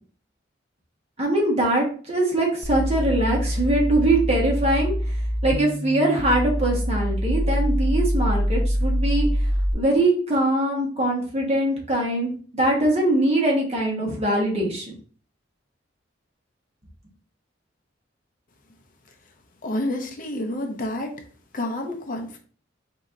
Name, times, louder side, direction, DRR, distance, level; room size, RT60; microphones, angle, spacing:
voice 1, 1.2-4.9 5.4-9.3 9.7-14.9, right 1 dB, 35° right, -1 dB, 1.4 m, -22 dB
sound 1, 2.6-9.7, equal, 5° right, 0.5 m, -24 dB
voice 2, 19.6-21.2 21.5-22.4, left 1 dB, 45° left, 4 dB, 0.7 m, -29 dB
4.2 x 2.8 x 3.7 m, 0.42 s
head